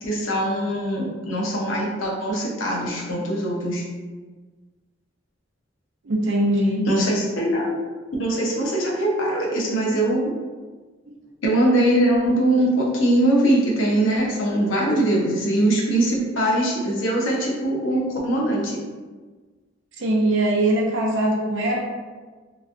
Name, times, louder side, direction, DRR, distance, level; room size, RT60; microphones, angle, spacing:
voice 1, 0.0-3.8 6.8-7.7 8.2-10.3 11.4-18.8, right 1 dB, 80° left, -3 dB, 0.7 m, -22 dB
voice 2, 6.0-6.9 20.0-21.8, right 1 dB, 70° right, -1 dB, 0.6 m, -21 dB
3.0 x 2.4 x 2.5 m, 1.4 s
head